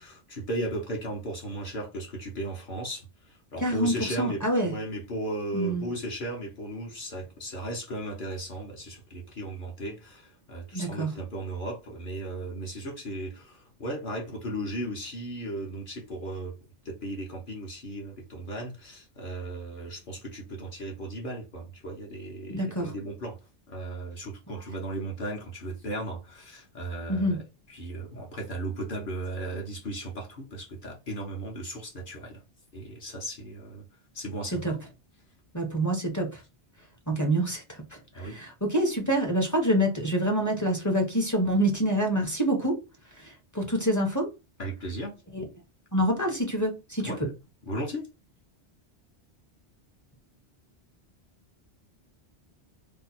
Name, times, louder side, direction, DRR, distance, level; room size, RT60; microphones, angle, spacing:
voice 1, 0.0-16.5 16.8-23.4 23.7-27.4 27.7-32.4 32.7-33.8 34.1-34.8 38.1-38.3 44.6-45.2 47.0-47.2 47.6-48.0, right 1 dB, 50° left, 0.9 m, -36 dB
voice 2, 3.6-4.7 5.5-5.9 10.7-11.1 22.5-22.9 27.1-27.4 34.5-34.7 35.5-36.4 37.1-37.8 38.2-42.8 43.2-44.3 45.3-45.4 45.9-47.1, right 1 dB, 20° left, 0.6 m, -26 dB
2.8 x 2.1 x 4.1 m
omnidirectional pair, 1.2 m